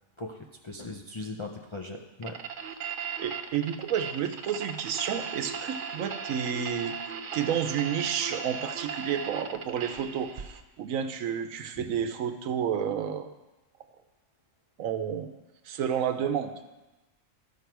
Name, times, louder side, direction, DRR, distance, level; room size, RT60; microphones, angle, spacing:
voice 1, 0.2-2.4 11.8-11.9, left 2 dB, 40° left, 1 dB, 0.4 m, -39 dB
sound 1, 2.2-10.6, right 6 dB, 50° right, 0.7 m, -37 dB
voice 2, 3.2-7.0 7.3-10.5 10.8-13.3 14.8-15.3 15.7-16.5, right 8 dB, 85° right, 8 dB, 1.1 m, -30 dB
12.5 x 5.5 x 4.6 m, 1.1 s
omnidirectional pair, 1.4 m